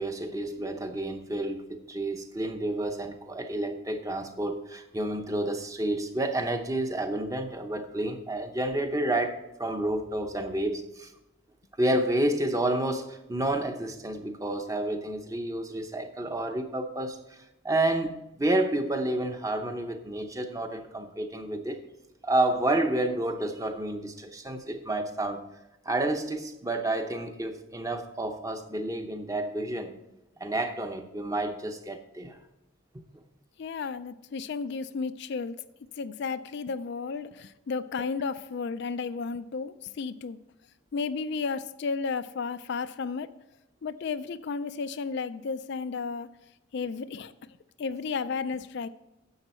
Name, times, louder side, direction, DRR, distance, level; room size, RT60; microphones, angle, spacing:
voice 1, 0.0-11.1 11.8-21.8 22.2-25.4 25.8-30.0 30.4-32.4, right 1 dB, 15° right, 6 dB, 0.7 m, -30 dB
voice 2, 33.6-35.6 36.0-40.4 40.9-43.3 43.8-46.3 46.7-47.3 47.8-48.9, left 5 dB, 50° left, 12 dB, 0.3 m, -33 dB
10.5 x 7.7 x 4.3 m, 0.95 s
head